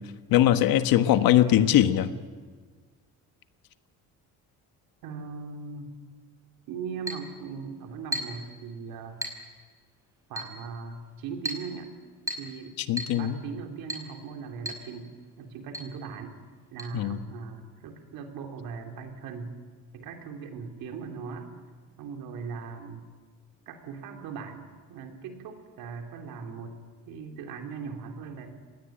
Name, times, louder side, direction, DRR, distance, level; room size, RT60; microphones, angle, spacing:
voice 1, 0.3-2.1 12.9-13.4 16.9-17.3, left 12 dB, 80° left, 10 dB, 1.4 m, -21 dB
voice 2, 5.0-5.9 6.7-9.2 10.3-11.9 12.4-12.8 13.1-15.1 15.4-16.4 16.7-19.5 19.9-21.5 22.0-23.1 23.7-26.8 27.1-28.5, right 5 dB, 85° right, 3 dB, 3.5 m, -39 dB
Chink clink, 7.1-7.3 8.1-8.4 9.2-9.4 10.4-10.6 11.4-11.7 12.3-12.5 13.0-13.2 13.9-14.1 14.6-14.9 15.1-15.2 15.7-15.9 16.8-16.9, right 1 dB, 10° right, 5.5 m, -34 dB
26.5 x 19.0 x 8.9 m, 1.5 s
cardioid pair, 115°, 35 cm